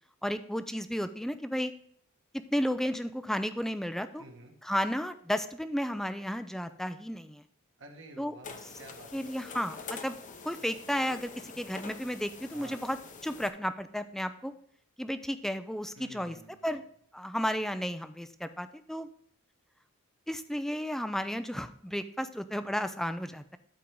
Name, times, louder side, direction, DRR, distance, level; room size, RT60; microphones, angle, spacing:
voice 1, 0.2-1.7 2.5-4.2 4.6-7.4 8.2-8.3 9.1-10.2 10.4-14.5 15.0-16.4 16.6-16.8 17.1-19.1 20.3-23.6, equal, ahead, 10 dB, 0.4 m, -33 dB
voice 2, 4.2-4.5 7.8-9.6 12.5-12.8 16.0-16.8, right 2 dB, 60° right, 2 dB, 1.7 m, -51 dB
sound 1, 8.4-13.5, left 4 dB, 35° left, 0.7 m, -46 dB
12.5 x 4.5 x 3.7 m, 0.65 s
head